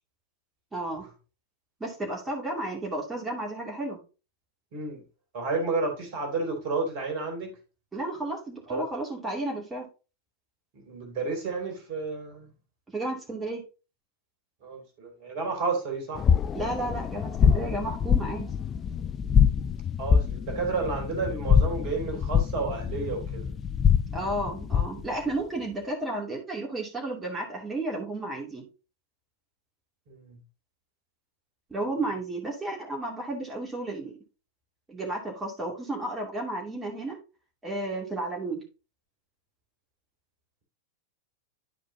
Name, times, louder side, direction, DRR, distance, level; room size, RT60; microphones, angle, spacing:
voice 1, 0.7-1.1 1.8-4.0 7.9-9.9 12.9-13.6 16.5-18.5 24.1-28.6 31.7-34.2 34.9-37.2 37.6-38.6, right 2 dB, 15° right, 2.5 m, -32 dB
voice 2, 4.7-5.0 5.3-7.6 8.7-9.0 10.7-12.5 14.6-16.3 20.0-23.5 30.1-30.4, right 4 dB, 45° right, 2.8 m, -31 dB
sound 1, 16.2-25.1, left 7 dB, 25° left, 0.5 m, -25 dB
11.5 x 5.0 x 2.7 m
figure-of-eight pair, 90°, 0 cm